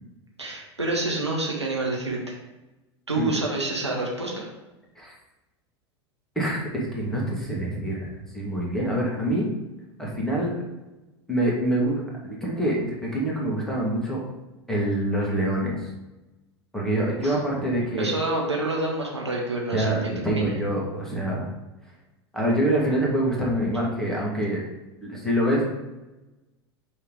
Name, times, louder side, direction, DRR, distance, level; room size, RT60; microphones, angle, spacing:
voice 1, 0.4-2.3 3.1-4.5 17.2-17.4 18.0-20.6, right 2 dB, 90° right, -2 dB, 1.3 m, -28 dB
voice 2, 6.4-9.5 10.0-10.6 11.3-14.2 14.7-15.8 16.7-18.1 19.7-21.4 22.3-24.6 25.0-25.6, right 1 dB, 5° left, -4 dB, 1.9 m, -25 dB
5.7 x 3.5 x 4.8 m, 1.0 s
figure-of-eight pair, 85°, 14 cm